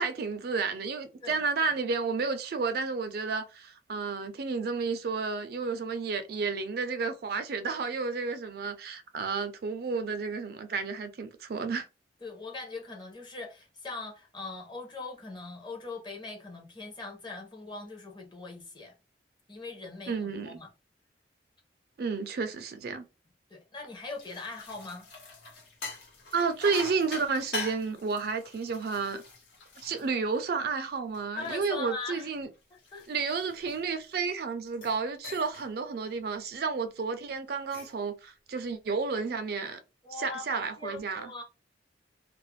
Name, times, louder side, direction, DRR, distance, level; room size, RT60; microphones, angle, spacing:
voice 1, 0.0-11.9 20.1-20.6 22.0-23.0 26.3-29.2 29.8-32.5 33.1-39.8 40.1-41.3, right 4 dB, 55° right, 0.4 m, -31 dB
voice 2, 12.2-18.9 19.5-20.7 23.5-25.1 31.3-32.3 32.7-33.1 40.0-41.4, left 3 dB, 25° left, 0.7 m, -41 dB
sound 1, 23.9-30.7 31.1-34.2 34.7-35.0 35.2-35.7 36.1-36.3 37.5-38.0, left 3 dB, 70° left, 0.9 m, -43 dB
2.3 x 2.0 x 3.1 m
head